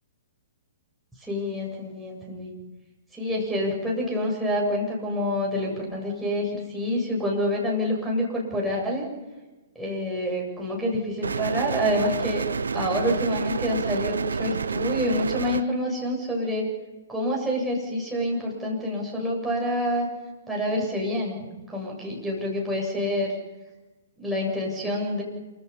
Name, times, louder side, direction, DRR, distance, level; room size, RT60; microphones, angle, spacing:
voice 1, 1.2-2.5 3.1-9.1 9.7-12.4 12.7-16.7 17.1-20.1 20.5-21.4 21.7-23.3 24.2-25.2, left 1 dB, 5° right, -3 dB, 7.9 m, -27 dB
sound 1, 11.2-15.6, right 5 dB, 70° right, 0.7 m, -29 dB
27.5 x 25.5 x 5.6 m, 1.2 s
figure-of-eight pair, 115°, 0 cm